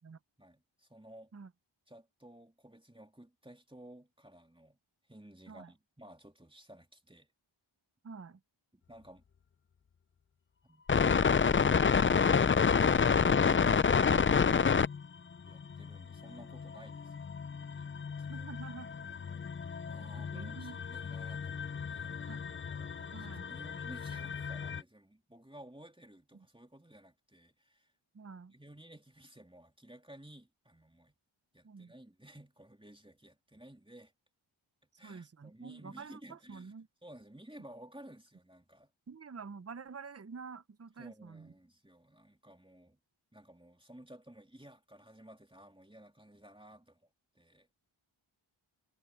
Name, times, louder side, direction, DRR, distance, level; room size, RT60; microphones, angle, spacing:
voice 1, 0.4-1.3 1.9-4.8 5.1-7.3 8.7-9.2 10.6-10.8 11.6-11.8 12.8-14.9 15.4-17.3 17.7-17.9 18.3-18.6 19.9-22.3 22.7-27.9 28.5-31.2 31.5-34.1 35.0-36.7 37.0-38.9 41.0-43.0 43.3-47.1 47.3-47.7, right 1 dB, 10° right, 3.1 m, -55 dB
voice 2, 8.0-8.4 18.3-18.9 20.1-20.9 22.3-22.4 23.1-23.5 26.3-26.4 28.1-28.5 31.6-31.9 35.0-36.9 39.1-41.5, right 5 dB, 30° right, 0.7 m, -48 dB
sound 1, 10.9-15.1 15.5-24.8, left 6 dB, 25° left, 0.4 m, -29 dB
wide cardioid pair, 55°, 49 cm